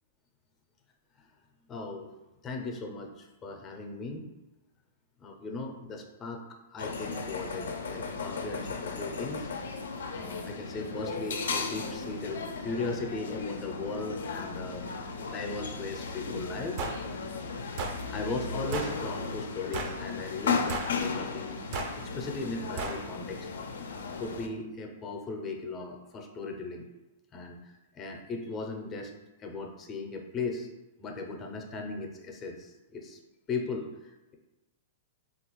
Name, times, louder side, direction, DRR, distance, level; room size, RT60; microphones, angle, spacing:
voice 1, 1.7-2.1 2.4-4.3 5.2-6.4 6.7-9.5 10.1-16.8 17.3-17.6 18.1-21.5 21.9-23.5 24.2-26.9 27.3-29.1 29.4-30.7 31.0-33.2 33.5-34.3, left 3 dB, 25° left, 2 dB, 0.5 m, -37 dB
sound 1, 6.8-24.5, left 4 dB, 85° left, 0.3 m, -36 dB
sound 2, 16.8-17.0 17.8-18.0 18.7-19.0 19.7-20.0 20.7-21.0 21.7-22.0 22.8-23.0, right 3 dB, 45° right, 0.4 m, -34 dB
3.3 x 2.3 x 3.0 m, 1.0 s
hypercardioid pair, 135°, 0 cm